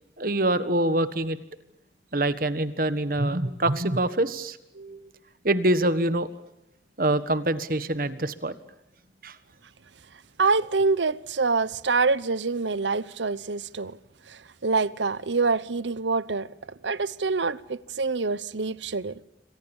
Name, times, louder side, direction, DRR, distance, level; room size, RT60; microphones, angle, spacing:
voice 1, 0.2-1.4 2.1-5.0 5.4-6.3 7.0-8.5 9.2-9.4, right 1 dB, 50° right, 1.5 m, -25 dB
voice 2, 10.4-14.0 14.3-16.5 16.8-19.2, right 4 dB, 85° right, 0.9 m, -26 dB
28.5 x 25.0 x 7.2 m
head